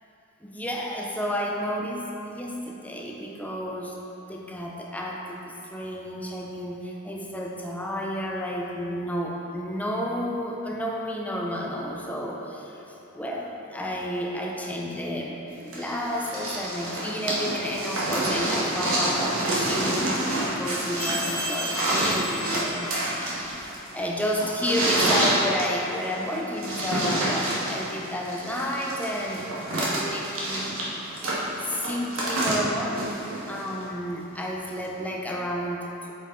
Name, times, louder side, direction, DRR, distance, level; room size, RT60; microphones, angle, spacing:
voice 1, 0.4-3.9 4.3-12.8 13.1-20.1 20.4-29.4 29.7-30.7 31.4-33.0 33.5-36.1, equal, 5° left, -1 dB, 0.5 m, -31 dB
sound 1, 15.7-33.8 34.8-34.9, right 1 dB, 75° right, 1.3 m, -28 dB
sound 2, 21.0-23.6, equal, 35° left, 1.0 m, -34 dB
6.5 x 4.5 x 3.9 m, 2.9 s
head